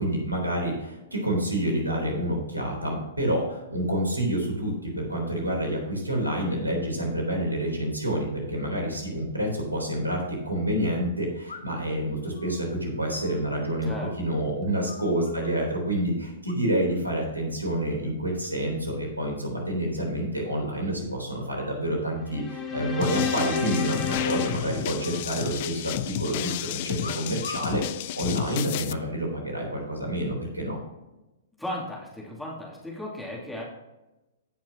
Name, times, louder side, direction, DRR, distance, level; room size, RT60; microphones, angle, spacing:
voice 1, 0.0-27.8 28.1-30.8, right 1 dB, 85° right, 0 dB, 3.5 m, -28 dB
sound 1, 11.5-11.9 12.3-14.4 14.6-15.7 16.4-17.0 17.3-17.6 18.0-18.6 18.9-19.0 19.2-19.3 19.6-19.7 20.0-20.1 20.8-21.8 22.9-23.5 23.8-23.9 24.2-24.5 25.0-25.9 27.0-27.8 28.6-29.0, left 4 dB, 70° left, 1.3 m, -44 dB
voice 2, 13.8-14.1 14.7-14.8 31.6-33.6, left 1 dB, 5° left, -4 dB, 2.7 m, -35 dB
sound 2, 22.3-25.6, left 6 dB, 20° left, 1.6 m, -31 dB
sound 3, 23.0-28.9, left 14 dB, 45° left, 0.4 m, -32 dB
16.5 x 6.0 x 2.8 m, 1.0 s
figure-of-eight pair, 110°, 0 cm